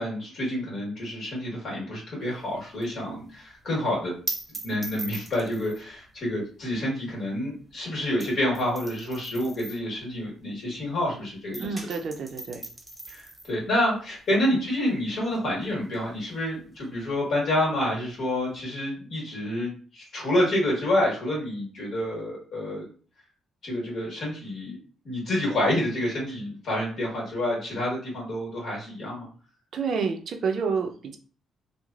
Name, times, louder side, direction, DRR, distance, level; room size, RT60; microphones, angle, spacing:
voice 1, 0.0-4.1 4.6-11.7 13.1-22.9 23.6-24.8 25.0-29.3, left 1 dB, 60° left, -3 dB, 1.3 m, -28 dB
sound 1, 2.2-11.1 11.4-18.6, right 2 dB, 15° right, 0.8 m, -41 dB
voice 2, 11.6-12.6 29.7-31.2, right 5 dB, 60° right, 5 dB, 0.5 m, -29 dB
3.1 x 2.0 x 2.4 m, 0.40 s
cardioid pair, 90°, 0 cm